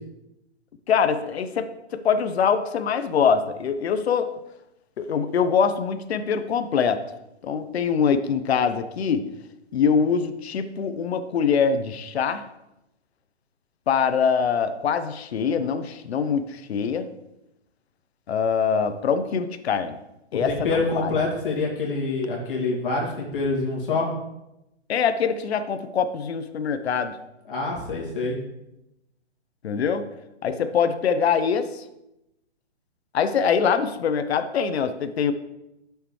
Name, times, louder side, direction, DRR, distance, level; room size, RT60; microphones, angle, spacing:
voice 1, 0.9-4.3 5.0-7.0 7.4-9.2 9.7-12.4 13.9-17.1 18.3-20.0 20.3-21.1 24.9-27.2 29.6-30.1 30.4-31.8 33.1-35.3, left 6 dB, 65° left, 10 dB, 0.8 m, -23 dB
voice 2, 20.5-24.1 27.5-28.4, left 3 dB, 50° left, -2 dB, 2.2 m, -26 dB
11.0 x 6.6 x 3.2 m, 0.90 s
hypercardioid pair, 175°, 34 cm